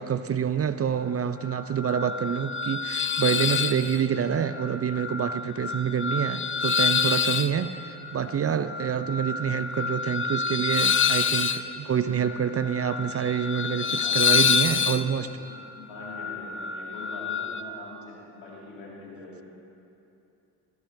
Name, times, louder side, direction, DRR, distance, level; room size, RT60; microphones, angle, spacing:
voice 1, 0.0-15.3, right 8 dB, 30° right, 12 dB, 0.4 m, -27 dB
sound 1, 1.4-17.6, left 6 dB, 25° left, 0.5 m, -28 dB
voice 2, 13.6-14.6 15.2-15.3 15.8-19.4, left 2 dB, 85° left, -4 dB, 2.3 m, -43 dB
15.0 x 12.0 x 2.7 m, 2.7 s
hypercardioid pair, 40°, 47 cm